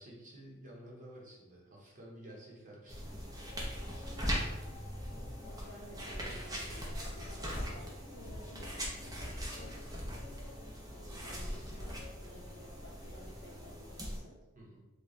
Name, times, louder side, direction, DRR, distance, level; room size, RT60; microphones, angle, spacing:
voice 1, 0.0-3.5 14.5-14.8, right 1 dB, 40° right, -3 dB, 1.0 m, -52 dB
sound 1, 2.9-14.2, equal, 20° right, 0.6 m, -40 dB
sound 2, 5.2-13.4, equal, 40° left, 0.6 m, -55 dB
voice 2, 5.4-9.8 10.9-14.4, left 1 dB, 80° left, -7 dB, 0.8 m, -54 dB
3.2 x 2.3 x 3.9 m, 1.1 s
head